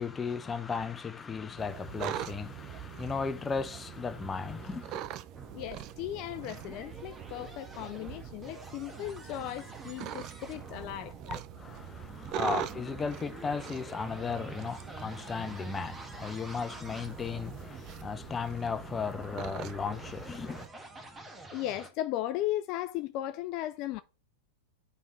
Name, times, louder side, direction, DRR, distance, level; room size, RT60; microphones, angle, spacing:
voice 1, 0.0-5.0 11.3-20.6, left 5 dB, 20° left, 0.7 m, -36 dB
sound 1, 1.6-20.7, right 11 dB, 40° right, 0.6 m, -43 dB
sound 2, 5.3-21.9, right 2 dB, 15° right, 1.3 m, -48 dB
voice 2, 5.5-11.1 12.2-12.4 21.5-24.0, left 14 dB, 45° left, 0.4 m, -36 dB
8.1 x 3.5 x 3.9 m
hypercardioid pair, 115°, 0 cm